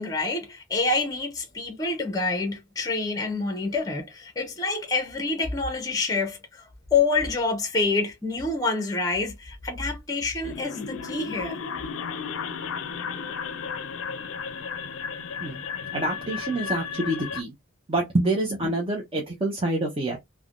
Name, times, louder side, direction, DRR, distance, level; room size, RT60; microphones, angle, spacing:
voice 1, 0.0-11.6, left 3 dB, 20° left, 0.6 m, -27 dB
sound 1, 10.4-17.4, left 6 dB, 80° left, 0.5 m, -34 dB
voice 2, 15.9-17.5 17.9-20.2, right 2 dB, 25° right, 0.6 m, -27 dB
3.3 x 2.1 x 2.4 m
head